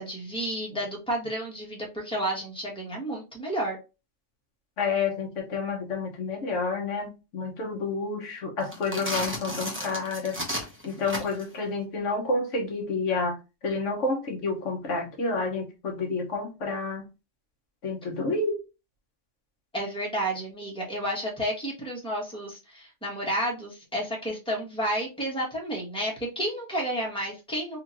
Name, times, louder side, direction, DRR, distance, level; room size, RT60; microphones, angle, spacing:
voice 1, 0.0-3.8 19.7-27.8, right 1 dB, 5° left, 1.2 m, -31 dB
voice 2, 4.8-10.4 10.8-13.4 13.6-17.1 17.8-18.6, left 3 dB, 85° left, 1.4 m, -29 dB
Velcro Rips, 8.6-11.5, equal, 10° right, 0.8 m, -33 dB
4.0 x 2.8 x 2.8 m
omnidirectional pair, 1.2 m